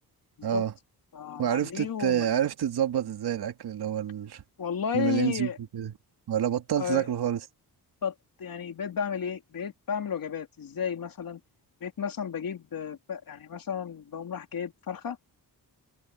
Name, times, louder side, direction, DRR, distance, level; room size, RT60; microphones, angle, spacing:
voice 1, 0.4-0.7 1.4-4.4 4.9-5.9 6.3-7.4, right 10 dB, 75° right, 2.5 m, -28 dB
voice 2, 1.1-2.3 4.6-5.6 6.8-7.1 8.0-11.4 11.8-15.2, left 7 dB, 60° left, 3.4 m, -33 dB
cardioid pair, 100°, 39 cm